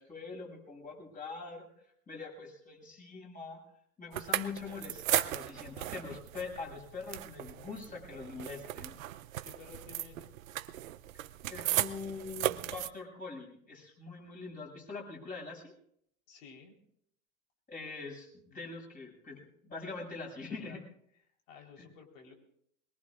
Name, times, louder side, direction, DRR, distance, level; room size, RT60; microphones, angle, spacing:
voice 1, 0.0-1.7 2.1-3.6 4.0-9.0 11.5-15.7 17.7-20.8 21.8-21.9, left 4 dB, 20° left, -1 dB, 7.1 m, -43 dB
sound 1, 4.1-12.9, right 14 dB, 70° right, 0.8 m, -36 dB
voice 2, 9.4-10.3 16.3-16.7 20.5-20.8 21.5-22.3, left 5 dB, 65° left, 2 dB, 4.0 m, -52 dB
22.5 x 21.5 x 2.5 m, 0.70 s
hypercardioid pair, 100°, 42 cm